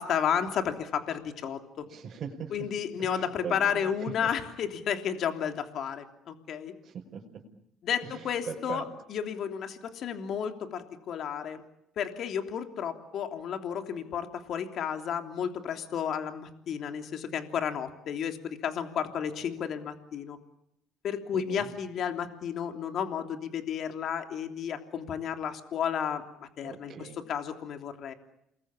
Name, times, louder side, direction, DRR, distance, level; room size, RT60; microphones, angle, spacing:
voice 1, 0.0-1.9 2.5-6.7 7.8-8.8 9.1-11.6 12.0-20.4 21.0-28.1, left 8 dB, 60° left, 6 dB, 3.1 m, -32 dB
voice 2, 1.9-2.5 3.0-3.9 6.8-7.2 8.0-8.8 21.3-21.6 26.6-27.2, right 7 dB, 45° right, -2 dB, 5.7 m, -40 dB
29.0 x 21.5 x 8.6 m, 0.81 s
supercardioid pair, 90°, 0 cm